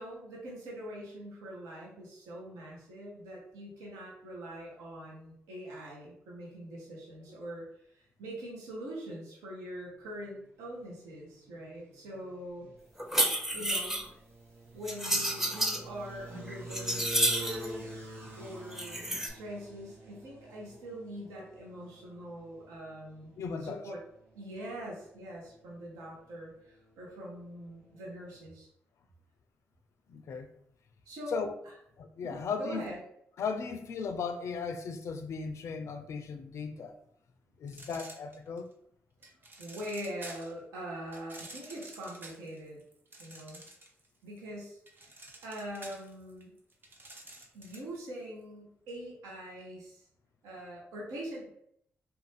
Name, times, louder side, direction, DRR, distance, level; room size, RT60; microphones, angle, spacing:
voice 1, 0.0-12.7 13.5-14.0 14.7-17.9 18.4-23.3 23.6-24.0 24.3-28.7 31.1-31.7 32.2-33.0 39.6-42.8 43.2-43.6 44.2-44.8 45.0-46.5 47.5-50.1 50.4-51.5, equal, 85° right, 0.7 m, -43 dB
sound 1, 10.4-28.5, right 1 dB, 60° right, 1.3 m, -49 dB
sound 2, 13.0-14.1 14.9-15.8 16.3-17.7 18.7-19.3, right 1 dB, 5° right, 0.6 m, -30 dB
voice 2, 23.4-23.8 30.1-30.5 31.3-31.6 32.0-32.8 33.4-36.9 37.6-38.7, left 5 dB, 65° left, 0.4 m, -36 dB
sound 3, 37.7-38.7 39.2-40.6 41.1-44.1 44.4-48.0, right 2 dB, 40° right, 0.7 m, -49 dB
2.6 x 2.2 x 3.2 m
supercardioid pair, 45°, 5 cm